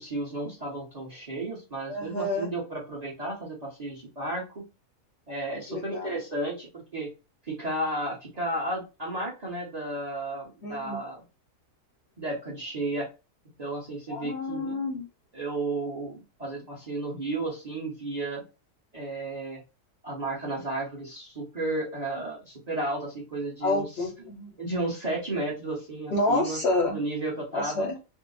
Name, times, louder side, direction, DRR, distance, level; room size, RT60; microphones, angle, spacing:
voice 1, 0.0-4.6 5.3-7.1 7.4-11.2 12.2-13.1 13.6-14.8 15.3-18.4 18.9-19.6 20.0-23.9 24.2-26.6 26.9-28.0, right 2 dB, 35° right, -2 dB, 0.7 m, -33 dB
voice 2, 1.9-2.5 5.7-6.2 10.6-11.0 14.1-15.1 23.6-24.6 26.1-27.0 27.5-27.9, left 2 dB, 65° left, 1 dB, 0.6 m, -29 dB
2.7 x 2.0 x 3.8 m, 0.29 s
omnidirectional pair, 1.7 m